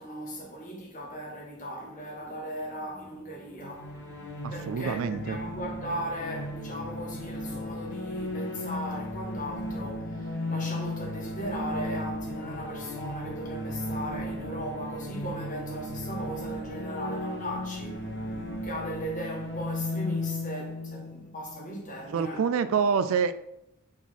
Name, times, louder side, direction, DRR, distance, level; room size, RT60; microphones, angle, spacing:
voice 1, 0.0-3.9 4.5-18.1 18.6-22.5, equal, 35° left, 1.4 m, -37 dB
sound 1, 1.8-18.6, equal, 5° right, 2.5 m, -53 dB
sound 2, 3.6-22.2, left 1 dB, 50° left, 1.2 m, -35 dB
voice 2, 4.4-5.4 22.1-23.3, right 6 dB, 65° right, 0.3 m, -26 dB
5.9 x 4.0 x 4.2 m
head